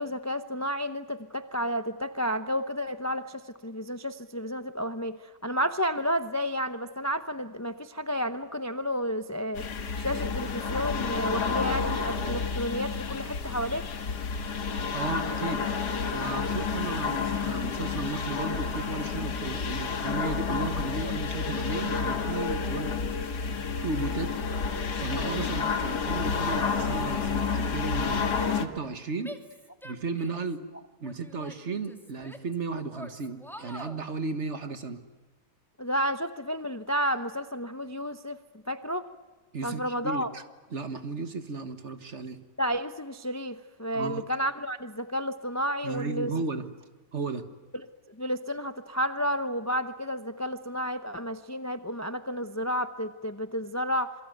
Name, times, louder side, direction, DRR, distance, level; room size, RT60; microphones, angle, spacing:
voice 1, 0.0-9.7 10.0-13.9 35.8-38.4 38.7-39.1 39.6-40.3 42.6-46.3 47.7-54.1, equal, 20° left, 10 dB, 0.4 m, -31 dB
sound 1, 9.5-28.7, left 5 dB, 65° left, 2.2 m, -30 dB
voice 2, 14.9-15.6 16.1-23.0 23.8-24.3 24.9-28.3 28.5-29.4 29.8-30.6 31.0-35.0 39.5-40.4 40.7-42.4 43.9-44.3 45.8-46.7 47.1-47.5, right 3 dB, 45° right, 9 dB, 1.7 m, -34 dB
Female speech woman speaking / Yell, 29.2-30.5 31.0-32.6 32.9-34.0, equal, ahead, 2.2 m, -45 dB
27.0 x 23.5 x 9.2 m, 1.3 s
omnidirectional pair, 1.9 m